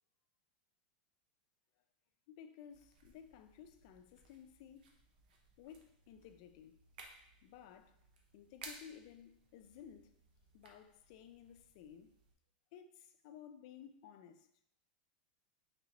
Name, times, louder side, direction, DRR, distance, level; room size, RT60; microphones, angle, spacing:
voice 1, 2.3-4.9 5.6-6.8 7.4-8.0 8.3-10.1 10.5-12.1 12.7-14.5, left 8 dB, 50° left, 0.4 m, -56 dB
sound 1, 2.7-12.3, right 3 dB, 85° right, 0.8 m, -60 dB
4.0 x 3.3 x 2.9 m
supercardioid pair, 165°, 5 cm